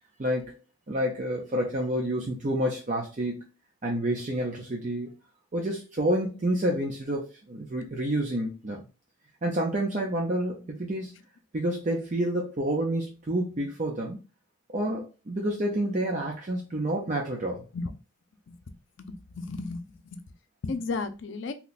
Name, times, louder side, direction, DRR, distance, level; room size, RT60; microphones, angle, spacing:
voice 1, 0.2-0.6 0.9-3.5 3.8-5.1 5.5-8.8 9.4-11.1 11.5-14.2 14.7-17.7, right 1 dB, 40° right, 0.5 m, -29 dB
voice 2, 19.1-19.9 20.1-20.2 20.6-21.5, left 3 dB, 70° left, 0.5 m, -33 dB
2.9 x 2.2 x 4.0 m
head